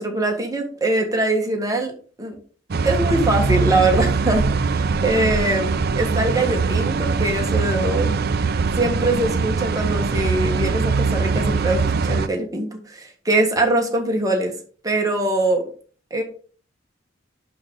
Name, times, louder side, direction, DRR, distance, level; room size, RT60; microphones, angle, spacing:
voice 1, 0.0-1.9 2.2-2.4 2.8-5.7 6.0-8.1 8.7-14.5 14.8-15.7 16.1-16.2, right 2 dB, 20° right, 2 dB, 1.6 m, -22 dB
sound 1, 2.7-12.3, right 4 dB, 55° right, 0.5 m, -22 dB
11.0 x 3.9 x 3.8 m, 0.41 s
head